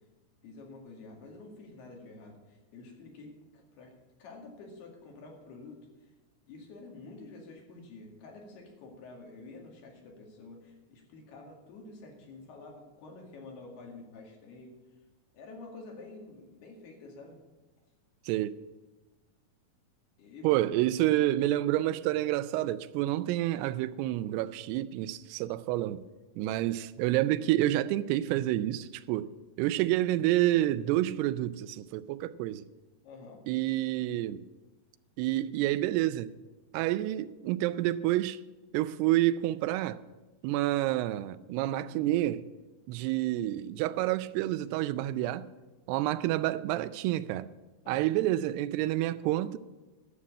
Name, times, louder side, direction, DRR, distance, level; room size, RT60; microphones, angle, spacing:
voice 1, 0.4-3.9 4.2-5.8 6.5-14.8 15.3-17.4 20.2-20.6 33.0-33.4 47.8-48.1, left 3 dB, 75° left, 4.2 m, -48 dB
voice 2, 18.3-18.6 20.4-26.0 26.4-29.3 29.6-32.7 33.5-34.4 35.2-36.3 36.7-38.4 38.7-40.0 40.4-42.4 42.9-45.5 45.9-47.5 47.9-49.6, right 15 dB, 85° right, 2.6 m, -28 dB
11.5 x 7.3 x 8.5 m
omnidirectional pair, 4.6 m